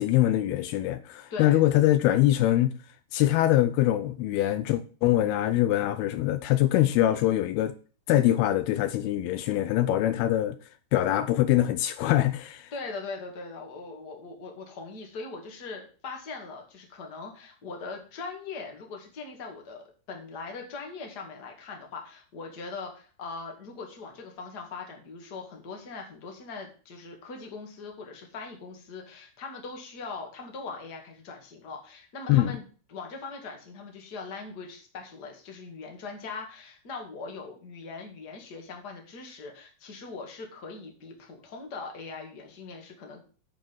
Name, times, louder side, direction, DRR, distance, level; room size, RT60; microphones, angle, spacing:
voice 1, 0.0-2.7 3.1-7.7 8.1-10.6 10.9-12.7 32.3-32.5, left 14 dB, 80° left, 2.5 m, -23 dB
voice 2, 1.3-1.6 12.7-32.6 32.9-43.2, left 4 dB, 35° left, 2.0 m, -41 dB
9.1 x 5.7 x 6.1 m
omnidirectional pair, 4.6 m